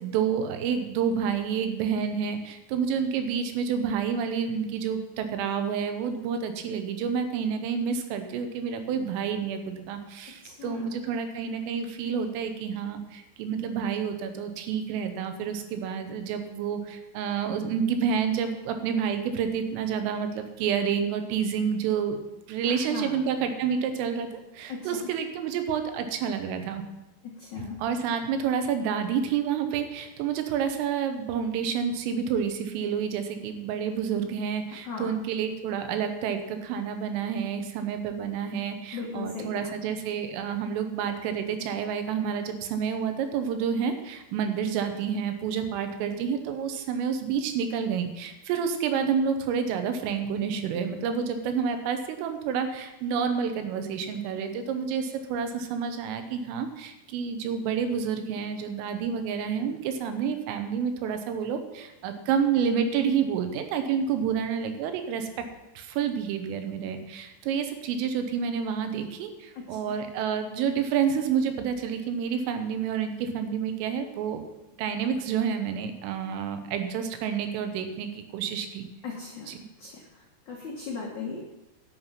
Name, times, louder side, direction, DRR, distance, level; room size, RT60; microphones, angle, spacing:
voice 1, 0.0-22.2 22.5-26.8 27.6-65.3 65.8-74.4 74.8-78.9 79.5-79.6, right 7 dB, 90° right, 7 dB, 3.7 m, -29 dB
voice 2, 10.4-11.0 22.7-23.1 24.7-25.1 27.4-27.8 34.8-35.1 38.9-39.7 69.8-69.9 79.0-79.5 79.8-81.4, left 5 dB, 75° left, -3 dB, 1.7 m, -37 dB
11.5 x 7.4 x 5.8 m, 0.97 s
omnidirectional pair, 5.7 m